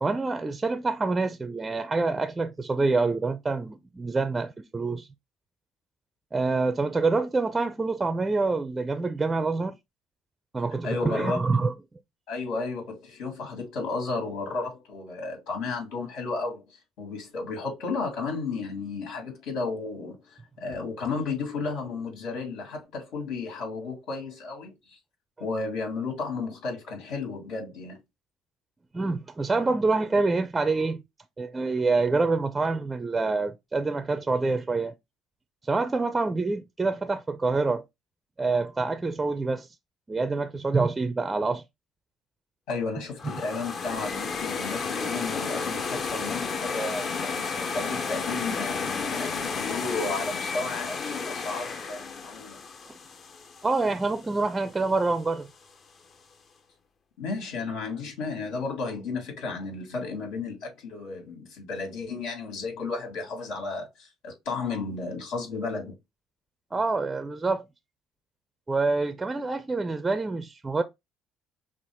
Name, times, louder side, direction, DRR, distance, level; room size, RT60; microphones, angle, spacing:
voice 1, 0.0-5.1 6.3-9.7 10.5-11.7 28.9-31.0 31.4-34.9 35.7-37.8 38.4-39.7 40.1-41.6 53.6-55.5 66.7-67.6 68.7-70.8, right 3 dB, 15° right, 0.5 m, -26 dB
voice 2, 10.8-11.7 12.3-25.0 25.4-28.0 42.7-52.6 57.2-65.9, left 4 dB, 80° left, 2.6 m, -33 dB
sound 1, 43.2-54.2, left 5 dB, 40° left, 0.8 m, -32 dB
6.0 x 2.4 x 3.5 m
cardioid pair, 115°, 0 cm